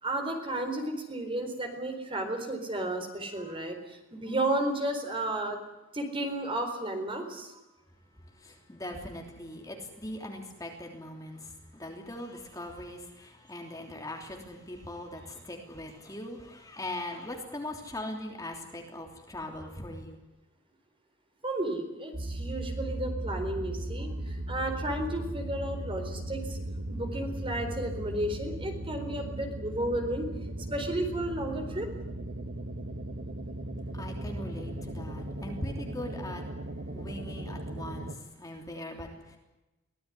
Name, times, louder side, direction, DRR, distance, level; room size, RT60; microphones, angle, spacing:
voice 1, 0.0-5.6 5.9-7.6 21.4-26.6 26.9-30.3 30.7-31.9, right 1 dB, 25° right, 5 dB, 4.1 m, -33 dB
voice 2, 8.4-20.2 33.9-36.4 36.9-39.4, left 1 dB, 15° left, 2 dB, 3.2 m, -40 dB
sound 1, 22.1-38.1, right 1 dB, 60° right, 1.7 m, -37 dB
24.0 x 17.5 x 10.0 m, 1.0 s
head